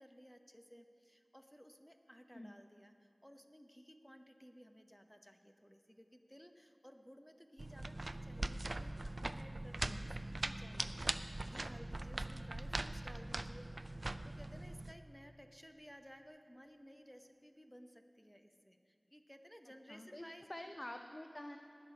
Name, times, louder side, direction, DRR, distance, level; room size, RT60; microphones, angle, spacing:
voice 1, 0.0-20.7, equal, 5° left, 6 dB, 0.9 m, -58 dB
sound 1, 7.6-14.9, right 2 dB, 55° right, 0.4 m, -41 dB
voice 2, 19.9-20.2 20.5-21.6, left 1 dB, 30° left, 5 dB, 0.6 m, -48 dB
19.5 x 6.6 x 5.3 m, 2.7 s
wide cardioid pair, 45°, 0 cm